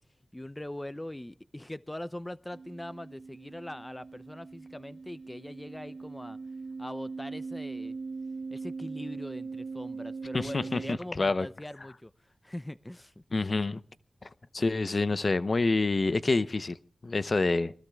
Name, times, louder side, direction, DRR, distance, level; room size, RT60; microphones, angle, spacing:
voice 1, 0.3-6.4 6.8-8.0 8.5-13.1, left 1 dB, 15° left, 0.6 m, -42 dB
sound 1, 2.5-11.0, right 4 dB, 75° right, 1.0 m, -40 dB
voice 2, 10.3-10.8 11.1-11.5 13.3-13.8 14.2-14.3 14.5-16.8 17.0-17.7, left 3 dB, 50° left, 0.8 m, -27 dB
25.0 x 20.0 x 2.4 m
cardioid pair, 50°, 0 cm